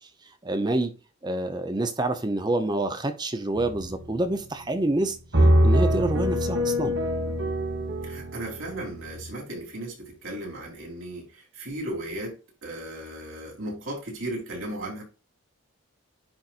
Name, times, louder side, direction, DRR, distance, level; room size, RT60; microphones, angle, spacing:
voice 1, 0.4-0.9 1.2-5.2 5.6-7.0, right 2 dB, 20° right, 0.6 m, -27 dB
sound 1, 3.6-4.4 5.3-9.3, equal, 55° right, 1.4 m, -24 dB
voice 2, 8.0-15.0, right 1 dB, 70° right, 3.4 m, -36 dB
10.5 x 4.1 x 2.4 m
head